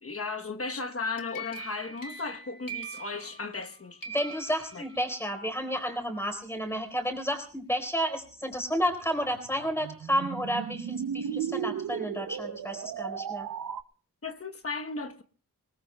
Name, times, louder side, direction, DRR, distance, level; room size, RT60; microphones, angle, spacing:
voice 1, 0.0-4.0 4.7-4.8 14.2-15.2, left 3 dB, 40° left, 1.0 m, -35 dB
sound 1, 0.9-3.7 4.0-5.3, right 2 dB, 75° left, 2.1 m, -42 dB
voice 2, 4.1-13.5, equal, 5° left, 4.1 m, -31 dB
sound 2, 8.9-13.8, right 8 dB, 70° right, 0.7 m, -35 dB
25.5 x 19.0 x 2.2 m
wide cardioid pair, 100°, 34 cm